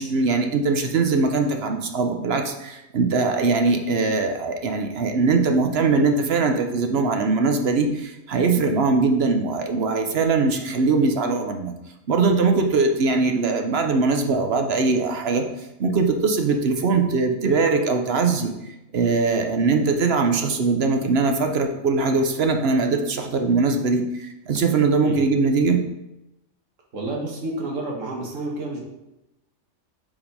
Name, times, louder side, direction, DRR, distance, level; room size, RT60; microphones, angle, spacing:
voice 1, 0.0-11.7 12.1-15.4 15.8-18.5 18.9-25.8, right 4 dB, 60° right, 4 dB, 0.9 m, -21 dB
voice 2, 26.9-28.8, right 2 dB, 90° right, -2 dB, 1.8 m, -29 dB
5.3 x 5.0 x 5.3 m, 0.91 s
omnidirectional pair, 1.3 m